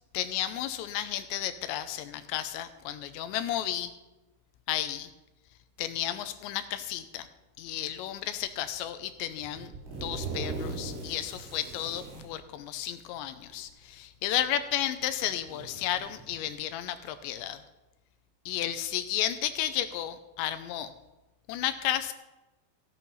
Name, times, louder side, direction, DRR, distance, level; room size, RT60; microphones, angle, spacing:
voice 1, 0.1-3.9 4.7-5.1 5.8-7.3 7.6-9.7 10.0-17.6 18.5-20.9 21.5-22.1, left 11 dB, 80° left, 11 dB, 2.8 m, -33 dB
sound 1, 8.4-8.8 9.3-12.3 13.4-13.5 14.4-14.5 15.0-16.5, right 3 dB, 85° right, 6.7 m, -39 dB
15.5 x 10.5 x 5.5 m, 1.1 s
omnidirectional pair, 5.4 m